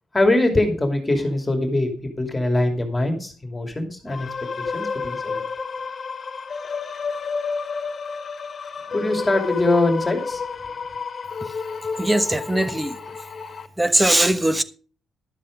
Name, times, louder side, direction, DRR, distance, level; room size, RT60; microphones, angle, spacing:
voice 1, 0.1-4.3 4.6-5.4 8.9-10.4, left 2 dB, 15° left, 2.6 m, -22 dB
sound 1, 4.1-13.7, left 5 dB, 40° left, 1.8 m, -30 dB
voice 2, 12.0-12.9 13.8-14.6, right 1 dB, 10° right, 1.1 m, -20 dB
12.0 x 7.5 x 5.2 m
cardioid pair, 90°, 0 cm